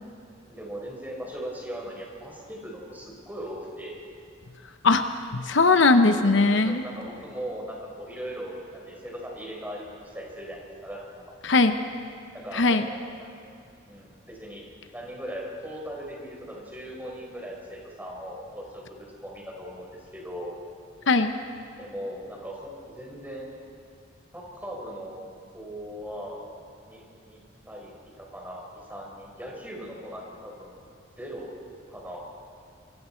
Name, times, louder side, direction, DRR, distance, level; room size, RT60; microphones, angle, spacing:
voice 1, 0.5-4.0 6.1-11.2 12.3-13.3 13.9-14.6 14.9-20.5 21.8-23.5 24.3-25.2 25.5-26.4 26.8-27.4 27.7-27.9 28.2-30.8 31.2-31.5 31.9-32.2, equal, 10° right, -2 dB, 4.8 m, -39 dB
voice 2, 5.3-6.8 11.4-11.7 12.5-12.9 21.1-21.3, left 3 dB, 65° left, 8 dB, 0.8 m, -19 dB
27.0 x 23.0 x 4.5 m, 2.3 s
head